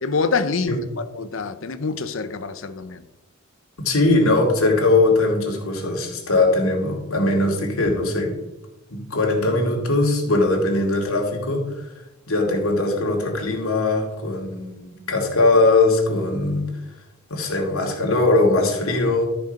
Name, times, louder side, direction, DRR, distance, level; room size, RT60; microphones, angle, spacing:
voice 1, 0.0-3.0, left 4 dB, 65° left, 12 dB, 0.7 m, -26 dB
voice 2, 3.8-8.3 8.9-11.9 12.3-16.7 17.3-19.3, left 2 dB, 80° left, 0 dB, 2.5 m, -20 dB
13.0 x 5.3 x 5.3 m, 0.97 s
head